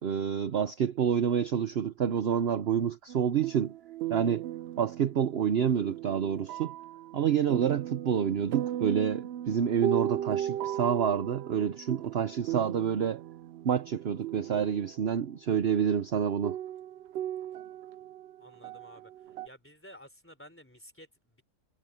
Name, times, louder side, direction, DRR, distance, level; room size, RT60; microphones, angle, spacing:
voice 1, 0.0-3.7 4.1-4.5 4.8-6.7 7.1-13.2 13.6-16.6, right 8 dB, 50° right, 0.9 m, -28 dB
sound 1, 3.1-15.1 16.0-16.1 16.4-19.5, right 11 dB, 85° right, 0.5 m, -37 dB
voice 2, 18.4-19.1 19.4-21.4, equal, 5° left, 3.5 m, -52 dB
omnidirectional pair, 1.6 m